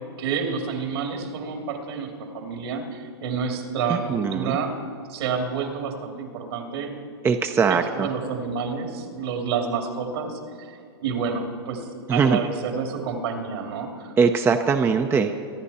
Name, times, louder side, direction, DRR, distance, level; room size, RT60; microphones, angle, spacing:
voice 1, 0.2-4.8 5.1-6.9 7.7-14.1, right 5 dB, 70° right, 3 dB, 2.7 m, -29 dB
voice 2, 3.9-4.6 7.2-8.1 12.1-12.4 14.2-15.3, right 5 dB, 15° right, 6 dB, 0.6 m, -21 dB
24.5 x 10.5 x 4.3 m, 2.4 s
hypercardioid pair, 120°, 14 cm